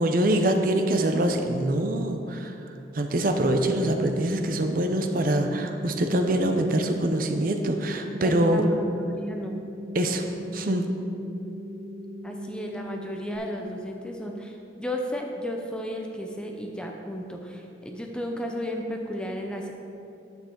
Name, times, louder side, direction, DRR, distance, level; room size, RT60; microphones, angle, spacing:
voice 1, 0.0-2.5 2.9-8.6 9.9-10.2 10.5-10.9, right 1 dB, 50° right, 5 dB, 0.6 m, -24 dB
sound 1, 3.4-13.4, left 1 dB, 65° left, 1.8 m, -39 dB
voice 2, 8.2-9.6 12.2-19.7, equal, 5° left, 1 dB, 0.6 m, -34 dB
9.4 x 8.1 x 3.8 m, 2.7 s
head